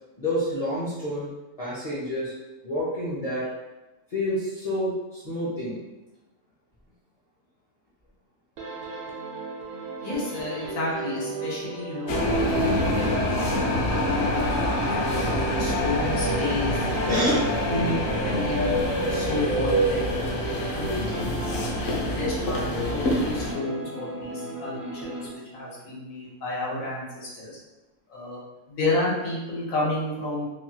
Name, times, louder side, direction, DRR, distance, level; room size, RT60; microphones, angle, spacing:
voice 1, 0.2-1.3 1.6-2.3 2.6-3.5 4.1-5.8 17.1-17.4 17.8-17.9, equal, 40° left, -8 dB, 0.5 m, -28 dB
sound 1, 8.6-25.8, right 3 dB, 65° right, 0.9 m, -35 dB
voice 2, 10.0-13.4 13.8-14.1 15.0-16.8 17.7-18.0 18.2-18.8 19.1-20.2 20.7-21.3 21.7-25.2 25.5-27.5 28.1-28.4 28.7-30.5, left 2 dB, 90° left, -5 dB, 1.3 m, -31 dB
sound 2, 12.1-23.5, left 1 dB, 65° left, 0.9 m, -26 dB
3.0 x 2.3 x 2.8 m, 1.0 s
omnidirectional pair, 1.4 m